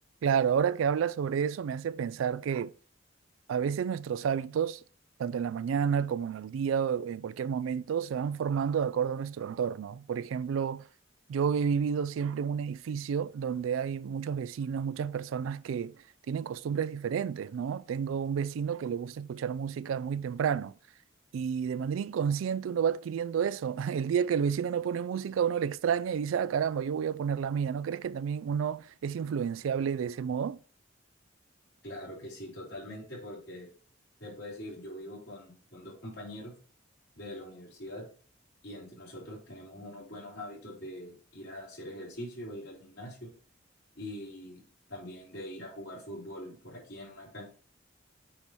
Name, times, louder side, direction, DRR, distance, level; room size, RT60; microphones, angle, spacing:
voice 1, 0.2-2.7 3.5-4.8 5.2-10.8 11.3-15.9 16.3-20.7 21.3-30.6, right 7 dB, 90° right, 0.3 m, -30 dB
voice 2, 31.8-33.7 34.2-36.5 37.2-38.1 38.6-43.3 43.9-44.6 44.9-47.5, left 1 dB, 55° left, 3.6 m, -43 dB
8.6 x 3.1 x 4.1 m
head